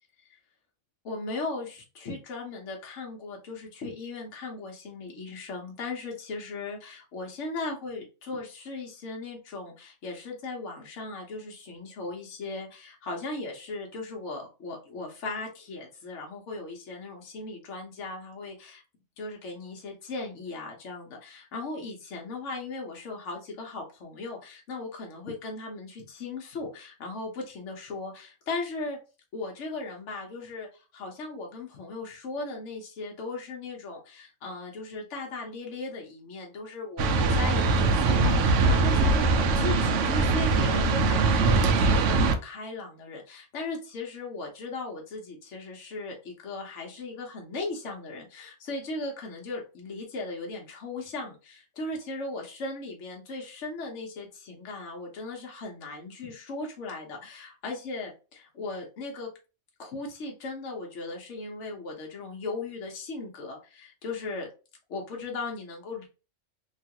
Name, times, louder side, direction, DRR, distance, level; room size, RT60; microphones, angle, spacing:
voice 1, 1.0-18.8 19.2-29.0 29.3-59.3 59.8-64.5 64.9-66.1, left 3 dB, 70° left, 0 dB, 1.1 m, -37 dB
sound 1, 37.0-42.3, right 3 dB, 75° right, 0.9 m, -22 dB
3.0 x 2.4 x 2.8 m, 0.31 s
omnidirectional pair, 1.3 m